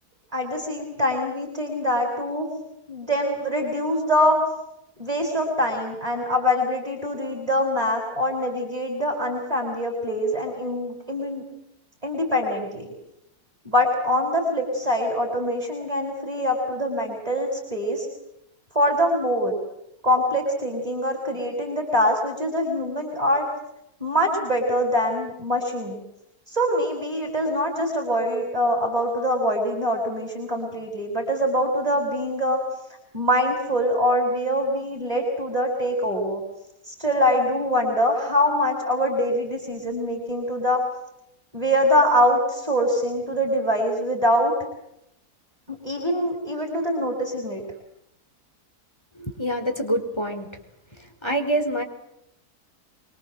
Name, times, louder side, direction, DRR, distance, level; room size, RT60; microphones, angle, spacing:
voice 1, 0.3-2.5 2.9-4.4 5.0-11.4 12.0-12.9 13.6-18.1 18.7-19.6 20.0-23.5 24.0-26.0 26.5-32.6 33.1-36.4 36.9-40.8 41.5-44.5 45.7-47.6, equal, 20° right, 2 dB, 6.2 m, -24 dB
voice 2, 49.1-50.5 51.0-51.8, right 1 dB, 15° left, 4 dB, 4.7 m, -26 dB
26.0 x 25.0 x 7.9 m, 0.83 s
omnidirectional pair, 1.7 m